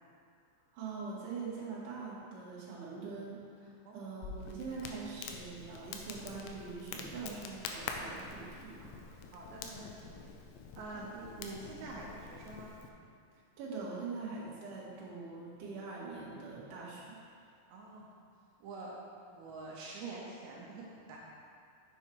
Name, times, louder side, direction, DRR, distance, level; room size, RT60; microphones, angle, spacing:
voice 1, 0.7-9.2 10.9-11.1 13.6-17.2, right 4 dB, 55° right, -7 dB, 2.7 m, -43 dB
Crackle, 4.2-12.9, left 5 dB, 85° left, 2.9 m, -46 dB
voice 2, 9.3-10.3 10.7-12.7 17.7-18.1 18.6-18.9 19.3-21.2, right 3 dB, 80° right, -4 dB, 3.0 m, -46 dB
7.4 x 6.9 x 4.6 m, 2.3 s
omnidirectional pair, 5.3 m